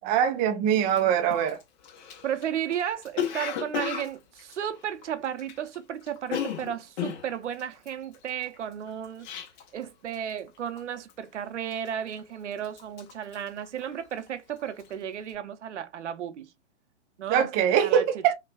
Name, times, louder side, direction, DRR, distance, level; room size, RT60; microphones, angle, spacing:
voice 1, 0.0-1.6 17.3-18.3, right 9 dB, 25° right, 0.5 m, -23 dB
Cough, 0.9-1.0 1.3-5.8 6.0-9.8 10.1-10.5 10.8-11.2 11.7-12.3 12.6-14.3 14.6-14.9, left 9 dB, 40° left, 0.9 m, -35 dB
voice 2, 2.2-9.3 9.7-16.5 17.2-18.2, right 9 dB, 75° right, 0.8 m, -34 dB
5.6 x 2.3 x 2.3 m
hypercardioid pair, 125°, 36 cm